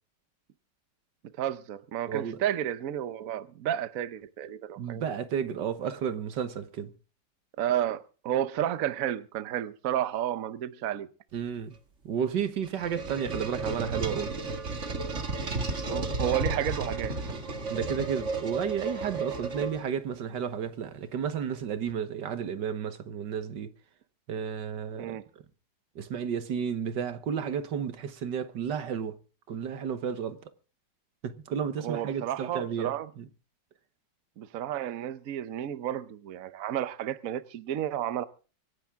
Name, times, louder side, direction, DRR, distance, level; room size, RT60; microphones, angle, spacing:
voice 1, 1.4-5.0 7.6-11.1 15.9-17.1 25.0-25.2 31.8-33.1 34.4-38.3, right 11 dB, 60° right, 1.1 m, -31 dB
voice 2, 2.1-2.4 4.8-6.9 11.3-11.7 12.0-14.4 17.7-23.7 24.3-25.2 25.9-29.2 29.5-30.4 31.2-33.3, right 7 dB, 85° right, 1.8 m, -32 dB
sound 1, 12.4-20.1, right 3 dB, 45° right, 2.1 m, -33 dB
25.5 x 10.5 x 3.7 m
omnidirectional pair, 1.9 m